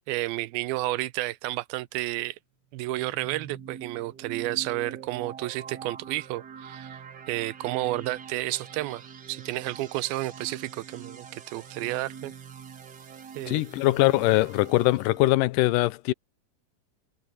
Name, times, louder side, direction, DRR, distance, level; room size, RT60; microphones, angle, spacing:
voice 1, 0.1-2.4 2.7-7.0 7.3-12.3 13.4-13.6, right 17 dB, 85° right, 2.5 m, -31 dB
sound 1, 2.7-15.3, right 7 dB, 70° right, 1.0 m, -44 dB
voice 2, 13.5-16.1, left 18 dB, 80° left, 2.0 m, -22 dB
omnidirectional pair, 4.3 m